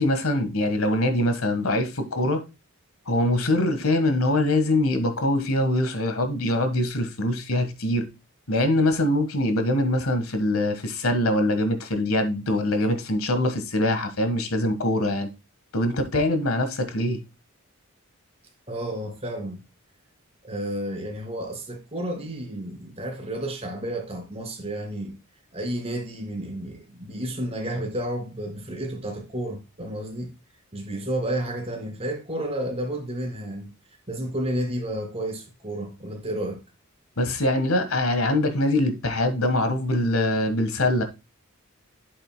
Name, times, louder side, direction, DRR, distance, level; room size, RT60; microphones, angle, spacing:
voice 1, 0.0-2.4 3.1-8.1 8.5-15.3 15.7-17.2 37.2-41.0, left 1 dB, 85° left, 1.5 m, -23 dB
voice 2, 18.7-19.6 20.4-25.2 25.5-30.3 30.7-33.7 34.1-36.6, right 1 dB, 30° right, 2.6 m, -31 dB
7.8 x 7.8 x 2.2 m
head